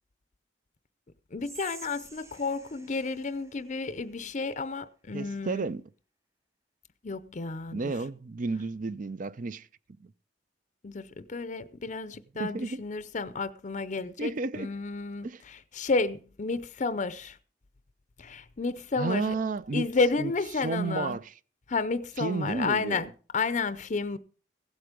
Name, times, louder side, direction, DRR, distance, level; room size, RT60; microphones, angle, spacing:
voice 1, 1.3-5.7 7.0-7.9 10.8-17.4 18.2-19.3 19.7-21.2 21.7-24.2, left 4 dB, 40° left, 0.6 m, -31 dB
Whispering, 1.4-4.6, right 3 dB, 15° right, 0.8 m, -50 dB
voice 2, 5.1-5.8 7.7-9.7 10.0-10.1 12.4-12.8 14.2-14.7 15.2-15.4 19.0-19.8 20.2-20.3 20.6-21.2 22.2-23.1, right 3 dB, 45° right, 0.5 m, -32 dB
15.5 x 8.0 x 5.1 m
head